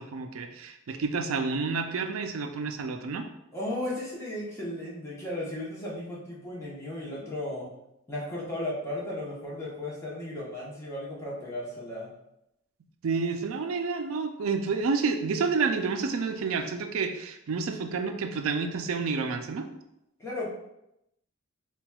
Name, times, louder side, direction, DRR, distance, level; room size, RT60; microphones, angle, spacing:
voice 1, 0.0-3.3 13.0-19.7, right 4 dB, 75° right, 6 dB, 0.4 m, -29 dB
voice 2, 3.5-7.7 8.1-12.1 20.2-20.5, left 1 dB, 15° left, -6 dB, 0.9 m, -35 dB
5.7 x 2.3 x 2.3 m, 0.84 s
head